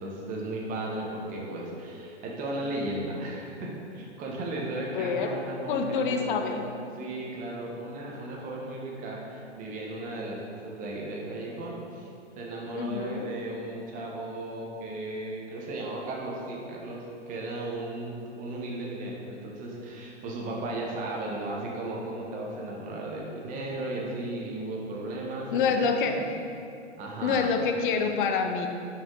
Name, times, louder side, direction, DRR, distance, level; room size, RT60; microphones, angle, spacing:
voice 1, 0.0-6.7 7.0-12.1 12.4-17.0 17.3-26.3 27.0-27.5, right 2 dB, 25° right, -2 dB, 0.9 m, -35 dB
voice 2, 4.9-5.4 5.7-6.6 12.7-13.3 25.5-26.5 27.2-28.7, left 5 dB, 45° left, 5 dB, 0.6 m, -27 dB
5.2 x 4.9 x 3.7 m, 2.5 s
hypercardioid pair, 115°, 36 cm